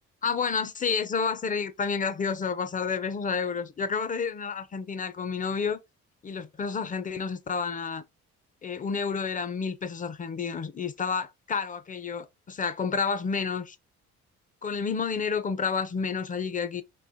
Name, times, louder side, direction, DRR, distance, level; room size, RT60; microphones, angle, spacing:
voice 1, 0.2-5.8 6.2-8.0 8.6-13.8 14.6-16.8, left 5 dB, 25° left, 0.4 m, -30 dB
3.8 x 2.7 x 2.6 m
cardioid pair, 90°, 30 cm